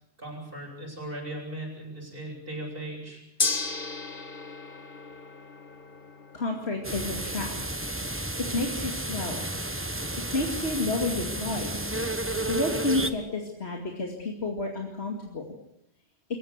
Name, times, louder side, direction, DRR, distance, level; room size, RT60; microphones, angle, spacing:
voice 1, 0.2-3.2, right 1 dB, 55° right, 0 dB, 8.2 m, -38 dB
Gong, 3.4-13.6, left 3 dB, 50° left, 1.7 m, -38 dB
voice 2, 6.3-7.5 8.5-9.4 10.3-11.8 12.5-15.4, left 2 dB, 70° left, 1 dB, 2.7 m, -30 dB
sound 1, 6.8-13.1, right 1 dB, 10° right, 1.2 m, -32 dB
27.0 x 16.0 x 8.2 m, 0.77 s
omnidirectional pair, 1.1 m